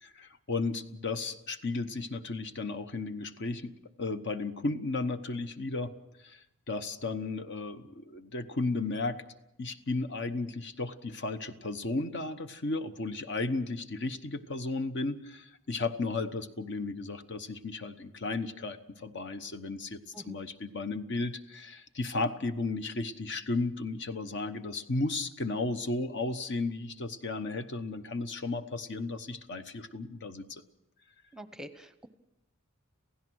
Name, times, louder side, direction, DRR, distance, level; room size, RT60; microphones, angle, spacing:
voice 1, 0.0-3.7 4.0-5.9 6.2-9.2 9.6-30.6, left 3 dB, 55° left, 10 dB, 1.0 m, -34 dB
voice 2, 31.3-32.1, equal, 5° right, 11 dB, 0.8 m, -46 dB
27.5 x 16.0 x 6.3 m, 0.88 s
head